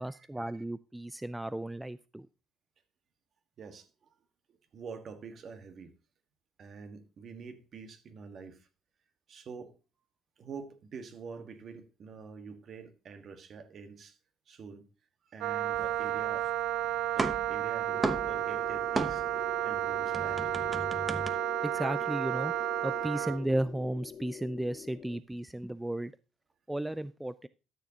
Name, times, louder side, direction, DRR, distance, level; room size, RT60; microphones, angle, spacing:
voice 1, 0.0-2.3 21.6-26.1 26.7-27.5, right 1 dB, 10° right, 0.4 m, -34 dB
voice 2, 4.7-5.9 6.6-8.7 9.3-9.7 10.4-14.1 14.5-14.8 15.3-16.5 17.1-19.2 19.6-20.4, right 5 dB, 50° right, 1.6 m, -46 dB
Wind instrument woodwind instrument, 15.4-23.4, right 12 dB, 70° right, 0.5 m, -32 dB
sound 1, 15.7-16.7 16.9-19.5 19.8-21.3, right 3 dB, 25° right, 1.0 m, -35 dB
sound 2, 17.9-25.2, left 8 dB, 50° left, 0.6 m, -46 dB
13.0 x 7.0 x 2.9 m
supercardioid pair, 70°, 0 cm